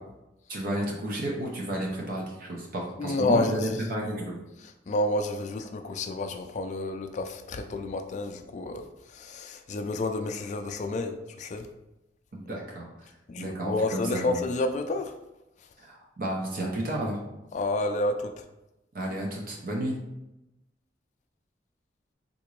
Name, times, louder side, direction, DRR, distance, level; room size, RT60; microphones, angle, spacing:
voice 1, 0.5-4.4 12.3-13.1 13.4-14.4 15.8-17.2 18.9-20.0, right 1 dB, 50° right, -2 dB, 0.5 m, -32 dB
voice 2, 3.0-3.7 4.9-8.8 9.1-11.7 13.3-15.1 17.5-18.4, left 2 dB, 40° left, 7 dB, 0.3 m, -29 dB
3.6 x 2.5 x 3.1 m, 0.94 s
head